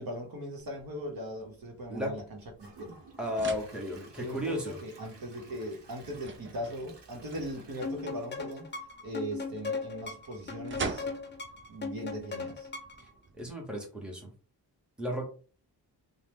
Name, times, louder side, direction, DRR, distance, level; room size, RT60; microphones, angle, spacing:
voice 1, 0.0-3.0 4.2-8.7 9.0-11.1 11.7-12.7, equal, 55° right, 1.0 m, -39 dB
sound 1, 0.6-13.5, right 4 dB, 30° right, 0.4 m, -46 dB
Gurgling / Toilet flush / Trickle dribble, 2.3-9.4 9.8-9.9 10.4-10.5, right 3 dB, 90° right, 0.8 m, -55 dB
voice 2, 3.2-4.8 13.4-14.3 15.0-15.3, left 1 dB, ahead, 0.9 m, -34 dB
sound 2, 7.8-13.1, left 4 dB, 25° left, 0.5 m, -38 dB
2.8 x 2.1 x 3.3 m
cardioid pair, 80°, 41 cm